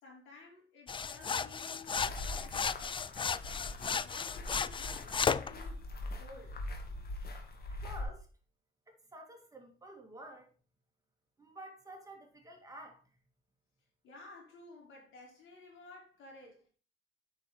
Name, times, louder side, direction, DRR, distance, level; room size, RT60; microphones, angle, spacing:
voice 1, 0.0-3.1 3.4-6.6 14.0-16.7, left 3 dB, 85° left, 4.6 m, -54 dB
sound 1, 0.9-5.5, left 6 dB, 25° left, 0.4 m, -34 dB
sound 2, 1.8-8.0, left 1 dB, 50° left, 2.3 m, -43 dB
voice 2, 7.7-8.3 8.9-10.5 11.4-13.2, right 1 dB, 15° right, 2.3 m, -51 dB
7.7 x 6.0 x 4.5 m
cardioid pair, 90°, 20 cm